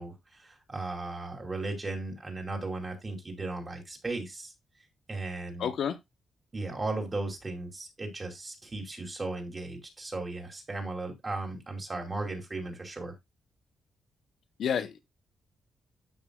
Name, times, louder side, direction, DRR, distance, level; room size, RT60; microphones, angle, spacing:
voice 1, 0.0-4.5 5.1-5.7 6.5-13.1, right 2 dB, 25° right, 2.5 m, -36 dB
voice 2, 5.6-6.0 14.6-15.0, left 8 dB, 70° left, 0.9 m, -29 dB
12.5 x 5.4 x 2.3 m
wide cardioid pair, 145°, 0 cm